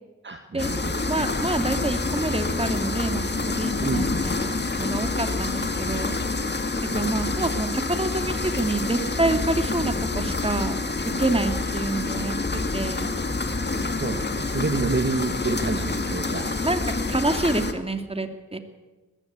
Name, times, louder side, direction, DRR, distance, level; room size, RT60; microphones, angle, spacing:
voice 1, 0.2-1.3 3.8-4.1 6.8-7.1 7.4-7.5 13.7-16.5, right 3 dB, 35° right, 6 dB, 1.6 m, -29 dB
sound 1, 0.6-17.7, left 3 dB, 35° left, 2.3 m, -27 dB
voice 2, 1.1-6.2 7.0-10.8 11.2-13.1 16.6-16.8 17.1-18.6, right 2 dB, 20° right, 7 dB, 2.7 m, -27 dB
20.5 x 15.5 x 8.4 m, 1.2 s
cardioid pair, 60°, 31 cm